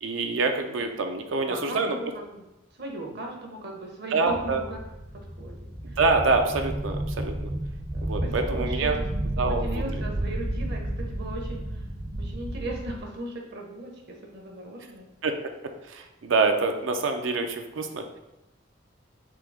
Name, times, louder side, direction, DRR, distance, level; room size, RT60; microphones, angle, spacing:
voice 1, 0.0-2.0 4.1-4.6 5.8-7.5 8.0-9.0 9.4-9.8 15.2-15.3 15.9-18.0, right 3 dB, 75° right, 5 dB, 0.5 m, -26 dB
voice 2, 1.2-2.4 2.8-4.8 5.1-5.6 5.9-6.0 7.9-9.0 9.5-11.8 12.2-15.1, right 2 dB, 60° right, 1 dB, 0.9 m, -37 dB
sound 1, 4.3-13.0, right 1 dB, 15° right, 0.5 m, -32 dB
3.8 x 2.9 x 4.8 m, 0.94 s
head